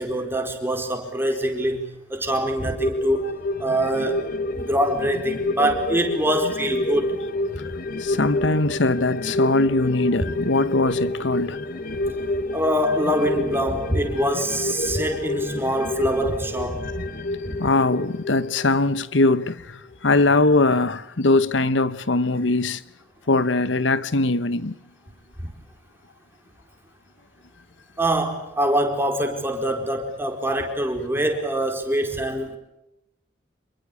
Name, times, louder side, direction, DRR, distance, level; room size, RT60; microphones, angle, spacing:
voice 1, 0.0-3.3 3.6-4.2 4.5-7.1 12.5-17.0 17.4-17.6 25.4-25.5 28.0-32.6, right 1 dB, 15° right, 4.5 m, -24 dB
sound 1, 2.8-19.6 19.9-20.0, left 2 dB, 50° left, 1.3 m, -29 dB
voice 2, 8.0-11.6 17.6-22.8 23.3-24.7, left 2 dB, 90° left, 1.1 m, -21 dB
27.0 x 23.0 x 8.6 m
head